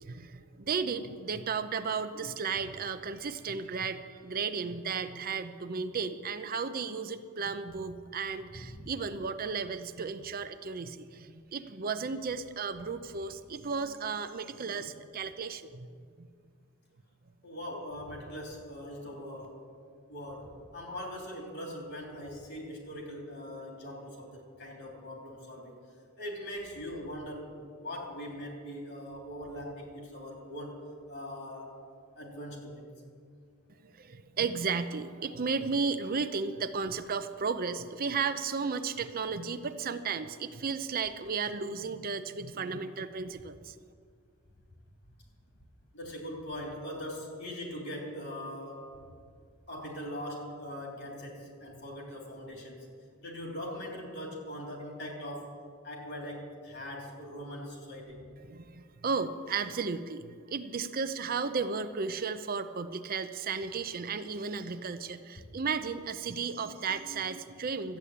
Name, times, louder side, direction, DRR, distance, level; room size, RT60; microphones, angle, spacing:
voice 1, 0.0-15.9 16.2-16.3 33.8-43.7 58.5-68.0, right 5 dB, 45° right, 10 dB, 0.5 m, -34 dB
voice 2, 17.4-19.5 20.1-25.7 26.2-31.7 32.2-32.9 45.9-48.9 49.7-52.8 53.2-55.5 55.8-58.2, equal, 55° left, 0 dB, 3.2 m, -41 dB
13.0 x 8.4 x 8.6 m, 2.1 s
head